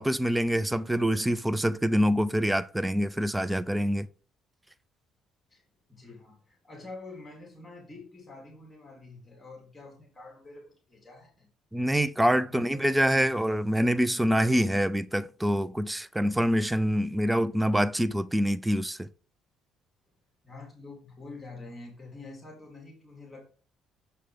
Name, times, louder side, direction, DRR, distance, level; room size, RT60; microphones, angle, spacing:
voice 1, 0.0-4.1 11.7-19.1, equal, 10° right, 0.6 m, -25 dB
voice 2, 5.9-11.5 12.5-13.3 20.4-23.4, left 3 dB, 20° left, 3.9 m, -46 dB
8.0 x 6.5 x 3.8 m
supercardioid pair, 65°, 0 cm